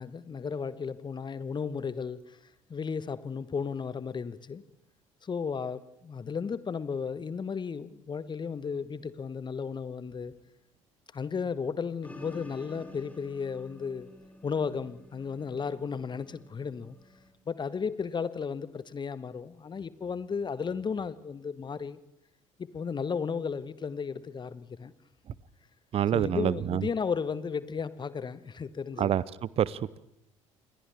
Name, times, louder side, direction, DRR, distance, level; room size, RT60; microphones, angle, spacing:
voice 1, 0.0-2.4 2.7-4.6 5.2-10.3 11.1-14.1 14.4-17.0 17.5-22.0 22.6-24.9 26.1-29.1, left 6 dB, 25° left, 16 dB, 1.2 m, -34 dB
sound 1, 12.0-17.3, left 2 dB, 10° left, 5.4 m, -50 dB
voice 2, 25.9-26.9 29.0-30.0, right 10 dB, 35° right, 21 dB, 0.7 m, -27 dB
30.0 x 27.0 x 3.5 m, 0.83 s
figure-of-eight pair, 55°, 17 cm